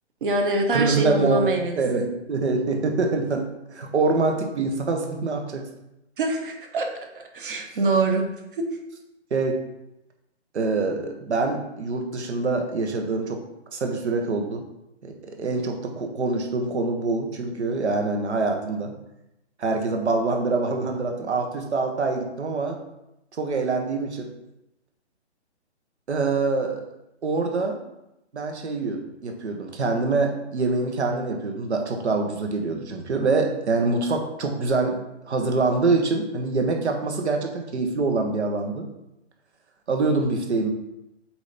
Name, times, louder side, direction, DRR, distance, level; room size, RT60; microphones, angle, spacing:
voice 1, 0.2-1.8 6.2-6.9 7.1-8.7, right 2 dB, 50° right, 3 dB, 1.2 m, -24 dB
voice 2, 0.7-3.4 3.7-5.6 9.3-9.6 10.5-13.4 13.7-14.6 15.0-18.9 19.6-22.8 23.4-24.3 26.1-26.8 27.2-27.8 28.3-35.0 35.3-38.9 39.9-40.7, right 3 dB, 70° right, 3 dB, 1.5 m, -25 dB
7.8 x 2.9 x 5.2 m, 0.88 s
hypercardioid pair, 165°, 34 cm